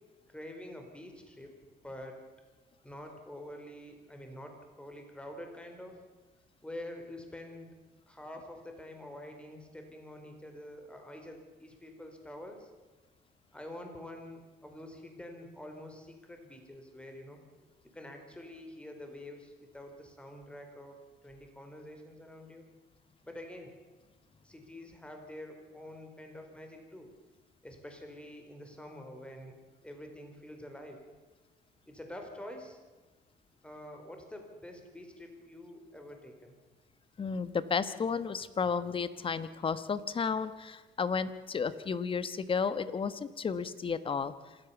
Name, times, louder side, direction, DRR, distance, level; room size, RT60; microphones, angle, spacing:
voice 1, 0.3-1.5 1.8-2.3 2.8-6.0 6.6-7.7 8.1-12.7 13.5-17.4 17.9-21.0 21.2-22.7 23.2-23.7 24.4-27.1 27.6-29.6 29.8-31.0 31.9-32.8 33.6-36.5, left 1 dB, 5° left, 4 dB, 4.3 m, -47 dB
voice 2, 37.2-44.3, left 5 dB, 30° left, 14 dB, 1.2 m, -32 dB
26.5 x 13.5 x 7.1 m, 1.2 s
cardioid pair, 110°, 17 cm